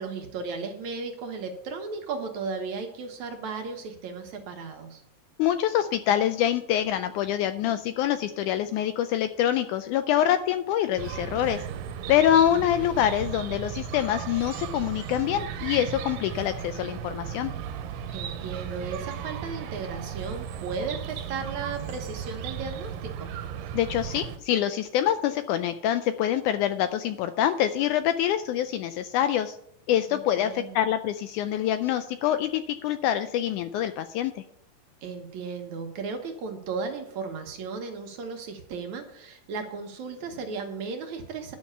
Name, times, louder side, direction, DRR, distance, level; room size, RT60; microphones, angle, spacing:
voice 1, 0.0-5.0 12.1-12.7 18.1-23.3 30.1-30.9 35.0-41.6, right 4 dB, 65° right, 4 dB, 2.5 m, -35 dB
voice 2, 5.4-11.6 12.1-17.5 23.7-29.6 29.9-34.4, left 11 dB, 80° left, 11 dB, 1.8 m, -25 dB
Chirp tweet, 11.0-24.4, right 8 dB, 90° right, 2.5 m, -36 dB
11.0 x 6.2 x 7.1 m, 0.72 s
omnidirectional pair, 3.9 m